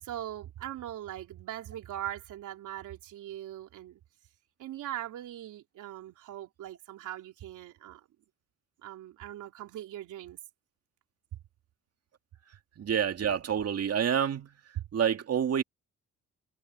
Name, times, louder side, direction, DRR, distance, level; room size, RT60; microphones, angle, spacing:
voice 1, 0.0-4.0 4.6-8.1 8.8-10.4 14.8-14.9, right 12 dB, 85° right, 3.7 m, -40 dB
voice 2, 12.8-14.5 14.9-15.6, right 8 dB, 55° right, 2.2 m, -28 dB
cardioid pair, 90°, 30 cm